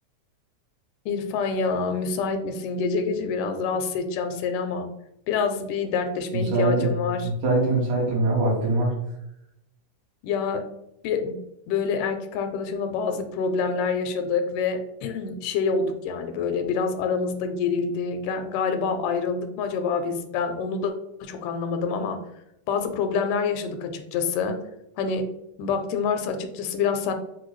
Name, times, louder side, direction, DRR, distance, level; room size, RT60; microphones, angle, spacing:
voice 1, 1.1-4.9 5.3-7.3 10.2-10.7 11.0-11.4 11.7-20.9 21.2-22.2 22.7-24.6 25.0-25.3 25.6-27.1, left 5 dB, 85° left, 6 dB, 2.0 m, -26 dB
voice 2, 6.3-7.0 7.2-8.9, right 2 dB, 75° right, -4 dB, 2.7 m, -23 dB
6.4 x 2.2 x 3.0 m, 0.83 s
omnidirectional pair, 3.7 m